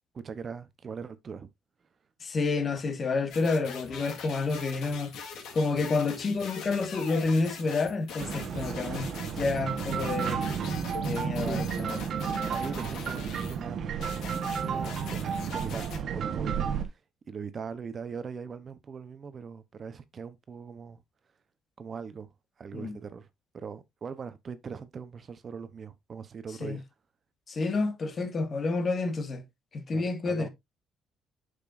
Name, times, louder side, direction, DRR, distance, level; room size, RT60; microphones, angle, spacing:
voice 1, 0.1-1.5 11.4-17.0 17.3-21.0 21.8-22.3 22.6-23.3 23.5-26.8 29.9-30.5, right 6 dB, 35° right, 0.8 m, -41 dB
voice 2, 2.2-5.1 5.5-10.5 11.0-12.1 12.4-12.5 22.7-23.0 26.6-26.8 27.5-29.4 29.7-30.5, left 3 dB, 35° left, 1.5 m, -29 dB
sound 1, 3.3-13.6 14.0-16.0, left 6 dB, 75° left, 3.0 m, -43 dB
sound 2, 8.2-16.8, right 7 dB, 50° right, 1.2 m, -32 dB
8.7 x 6.6 x 2.5 m
cardioid pair, 135°, 0 cm